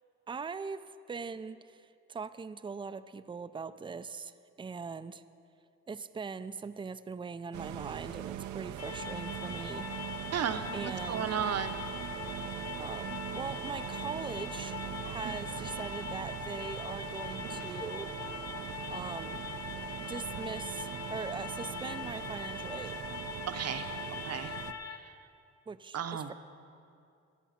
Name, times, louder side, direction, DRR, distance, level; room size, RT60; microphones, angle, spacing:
voice 1, 0.3-1.8 2.1-5.2 5.9-9.9 10.7-11.3 12.8-14.8 15.0-18.1 18.9-19.4 20.1-23.0 25.7-26.0, right 5 dB, 15° right, 12 dB, 0.5 m, -41 dB
sound 1, 7.5-24.7, right 11 dB, 75° right, 0.7 m, -41 dB
sound 2, 8.8-25.0, left 6 dB, 60° left, 1.0 m, -42 dB
voice 2, 10.3-11.8 23.5-24.5 24.8-25.3 25.9-26.3, right 8 dB, 55° right, 9 dB, 1.0 m, -35 dB
24.0 x 8.3 x 5.8 m, 2.5 s
cardioid pair, 90°, 30 cm